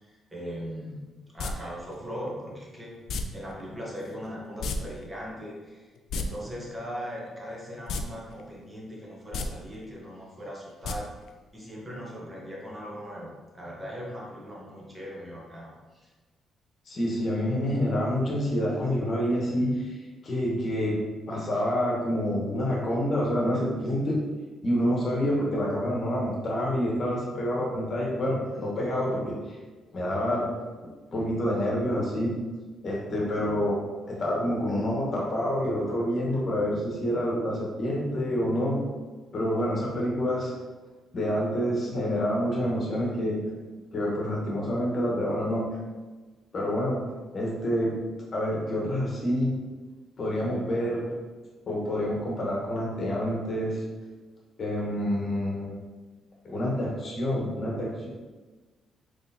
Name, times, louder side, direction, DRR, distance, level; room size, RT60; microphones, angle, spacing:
voice 1, 0.1-1.0 1.3-2.9 3.3-11.1 11.5-16.1, equal, 20° right, -4 dB, 1.1 m, -39 dB
sound 1, 1.4-1.5 3.1-3.2 4.6-4.8 5.0-5.1 6.0-6.2 7.9-8.0 8.4-8.5 9.2-9.5 10.8-10.9 11.3-11.4, left 4 dB, 70° left, 0.3 m, -30 dB
voice 2, 16.9-20.0 20.2-24.2 24.6-29.6 29.9-30.5 31.1-32.4 32.8-33.8 34.1-38.8 39.3-40.5 41.1-43.4 43.9-45.7 46.5-47.0 47.3-47.9 48.3-49.6 50.2-51.0 51.7-53.8 54.6-55.8 56.4-58.1, equal, 45° left, -3 dB, 1.2 m, -27 dB
3.8 x 3.2 x 2.8 m, 1.3 s
cardioid pair, 90°, 0 cm